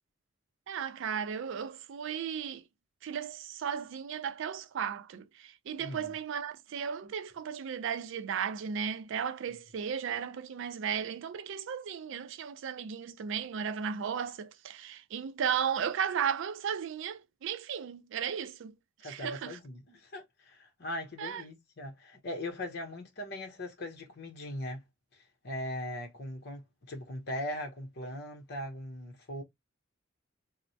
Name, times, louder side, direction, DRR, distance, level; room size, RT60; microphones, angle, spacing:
voice 1, 0.7-2.6 3.0-18.7 19.0-19.6 21.2-21.4, right 7 dB, 65° right, 0.4 m, -35 dB
voice 2, 5.8-6.1 19.0-24.8 25.1-29.4, left 1 dB, 55° left, 0.8 m, -40 dB
3.1 x 2.0 x 2.6 m
head